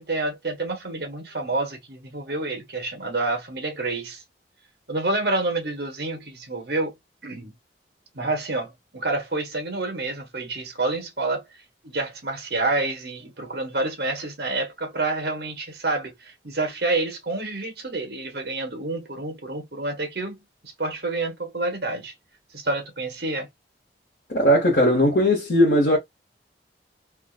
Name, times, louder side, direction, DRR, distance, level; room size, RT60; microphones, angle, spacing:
voice 1, 0.0-4.2 4.9-6.9 7.2-7.5 8.1-11.4 11.8-20.4 20.8-22.1 22.5-23.5, right 2 dB, 60° right, 1.0 m, -28 dB
voice 2, 24.3-26.0, equal, 65° left, 1.1 m, -18 dB
3.5 x 2.4 x 2.4 m
head